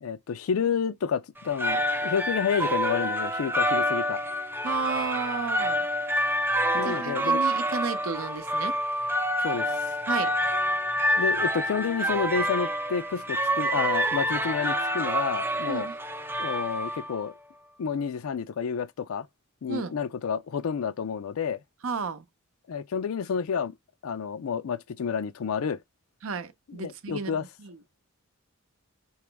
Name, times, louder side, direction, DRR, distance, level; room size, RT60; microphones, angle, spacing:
voice 1, 0.0-4.2 6.7-7.4 9.4-9.9 11.2-15.9 16.4-17.3 17.8-19.3 19.6-21.6 22.7-23.8 24.0-25.8 26.8-27.4, left 6 dB, 75° left, 0.4 m, -30 dB
sound 1, 1.4-17.3, equal, 10° right, 0.3 m, -27 dB
voice 2, 4.6-5.9 6.8-8.8 10.1-10.3 15.7-16.0 19.7-19.9 21.8-22.2 26.2-27.8, right 4 dB, 70° right, 0.7 m, -33 dB
4.8 x 3.0 x 3.3 m
head